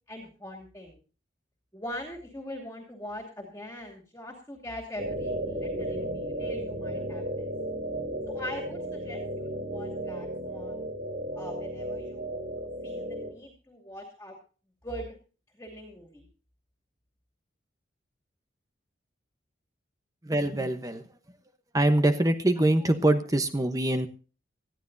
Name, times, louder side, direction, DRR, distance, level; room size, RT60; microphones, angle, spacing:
voice 1, 0.1-1.0 1.7-7.4 8.3-10.8 11.3-14.4 14.8-15.1 15.6-16.3, equal, 15° left, 0 dB, 2.5 m, -42 dB
sound 1, 5.0-13.3, right 1 dB, 60° right, 3.4 m, -34 dB
voice 2, 20.2-21.0 21.7-24.1, right 1 dB, 20° right, 8 dB, 0.9 m, -24 dB
19.5 x 14.0 x 2.7 m, 0.36 s
head